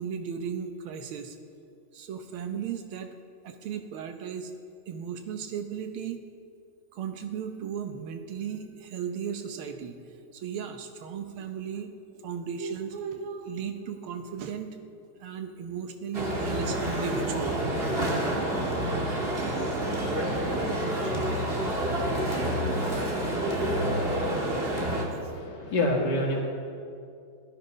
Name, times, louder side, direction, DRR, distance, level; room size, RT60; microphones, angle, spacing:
voice 1, 0.0-1.4 1.9-3.1 3.4-4.5 4.9-6.3 6.9-10.0 10.3-14.8 15.2-17.6 17.9-18.0 18.5-18.6 19.9-20.0 20.5-21.4 22.3-22.7 24.0-24.1 25.2-25.5, right 7 dB, 80° right, 7 dB, 1.8 m, -36 dB
sound 1, 16.1-25.0, right 1 dB, 30° right, 1.8 m, -28 dB
voice 2, 25.2-26.4, left 1 dB, 55° left, -1 dB, 2.5 m, -27 dB
16.5 x 11.0 x 5.2 m, 2.5 s
omnidirectional pair, 2.3 m